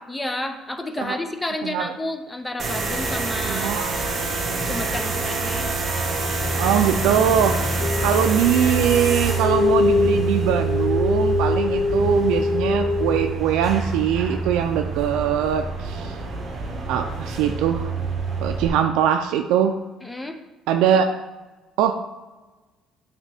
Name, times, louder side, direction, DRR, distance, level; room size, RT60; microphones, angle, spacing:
voice 1, 0.1-4.1 4.6-5.7 8.0-8.2 20.0-20.4 20.9-21.0, left 1 dB, 10° left, 6 dB, 0.5 m, -31 dB
voice 2, 1.6-1.9 3.5-3.9 6.6-7.5 8.0-16.2 16.9-17.9 18.4-19.7 20.7-21.1 21.8-22.0, right 9 dB, 85° right, 5 dB, 0.4 m, -22 dB
sound 1, 2.6-18.7, right 3 dB, 30° right, 1.2 m, -26 dB
sound 2, 7.8-13.3, left 4 dB, 70° left, 0.5 m, -24 dB
8.8 x 3.5 x 3.4 m, 1.2 s
cardioid pair, 145°, 0 cm